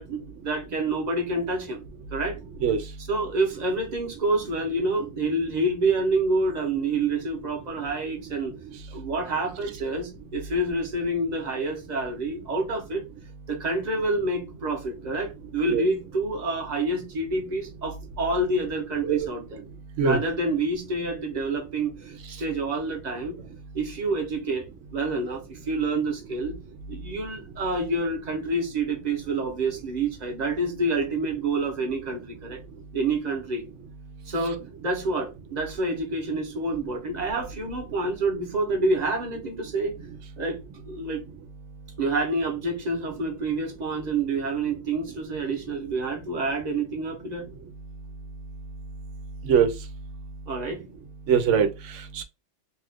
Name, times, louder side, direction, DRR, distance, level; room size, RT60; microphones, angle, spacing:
voice 1, 0.0-1.8 2.1-2.4 3.0-8.5 8.9-13.0 13.5-19.6 20.0-23.4 23.7-26.6 26.9-32.6 32.9-33.6 34.3-40.0 40.4-41.2 42.0-47.5 50.5-50.8, right 2 dB, 40° right, 0.9 m, -28 dB
voice 2, 51.3-52.2, right 7 dB, 85° right, 0.9 m, -22 dB
2.7 x 2.4 x 3.4 m
omnidirectional pair, 1.2 m